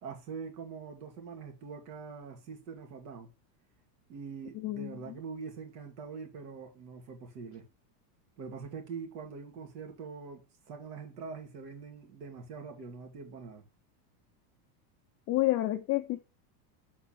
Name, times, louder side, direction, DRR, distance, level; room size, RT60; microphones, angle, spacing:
voice 1, 0.0-3.3 4.1-7.7 8.4-13.6, right 5 dB, 75° right, 2.6 m, -44 dB
voice 2, 4.6-4.9 15.3-16.2, left 16 dB, 30° left, 0.5 m, -29 dB
7.2 x 4.2 x 5.9 m
supercardioid pair, 135°, 49 cm